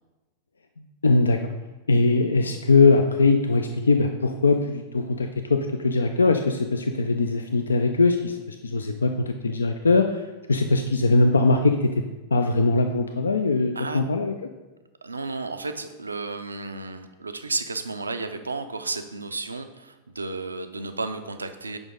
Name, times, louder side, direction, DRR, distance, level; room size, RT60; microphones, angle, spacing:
voice 1, 1.0-1.5 1.9-10.2 10.5-12.0 12.3-14.3, left 3 dB, 75° left, 6 dB, 0.3 m, -21 dB
voice 2, 13.7-14.1 15.0-21.8, right 3 dB, 80° right, 9 dB, 0.4 m, -32 dB
6.1 x 5.2 x 3.7 m, 1.1 s
figure-of-eight pair, 90°, 0 cm